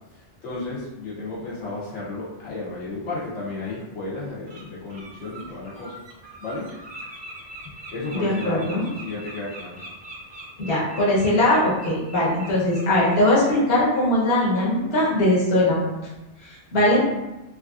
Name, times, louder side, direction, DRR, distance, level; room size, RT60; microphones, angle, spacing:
voice 1, 0.4-5.9 6.4-6.7 7.9-9.8, left 2 dB, 85° left, -7 dB, 1.1 m, -33 dB
Bird, 3.6-3.8 4.2-4.6 4.9-13.6 13.9-14.1 14.5-14.7, right 1 dB, 35° right, 0.4 m, -42 dB
voice 2, 8.2-8.9 10.6-15.9 16.4-17.0, left 1 dB, 60° left, -5 dB, 1.1 m, -20 dB
3.2 x 2.4 x 2.4 m, 0.98 s
omnidirectional pair, 1.2 m